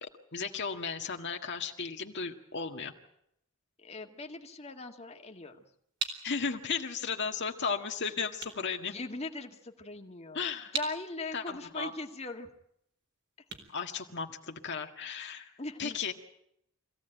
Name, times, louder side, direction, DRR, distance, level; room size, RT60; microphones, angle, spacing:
voice 1, 0.0-2.9 6.2-8.9 10.3-10.8 11.3-11.9 13.7-15.5 15.8-16.1, left 5 dB, 55° left, 4 dB, 1.8 m, -35 dB
voice 2, 3.8-5.6 8.8-10.4 10.7-12.5 15.6-16.0, left 2 dB, 30° left, 4 dB, 1.9 m, -40 dB
sound 1, 5.3-14.8, right 5 dB, 60° right, 4.1 m, -44 dB
25.0 x 16.0 x 9.1 m, 0.76 s
head